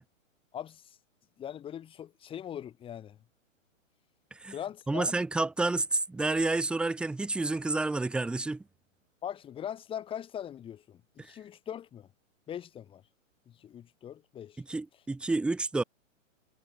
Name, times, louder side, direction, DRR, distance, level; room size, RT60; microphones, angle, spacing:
voice 1, 0.5-1.0 1.4-3.2 4.5-5.1 9.2-12.1 12.5-13.0 13.5-14.6, left 9 dB, 15° left, 4.3 m, -41 dB
voice 2, 4.9-8.6 11.2-11.3 14.6-15.8, right 3 dB, ahead, 1.1 m, -30 dB
hypercardioid pair, 160°, 40 cm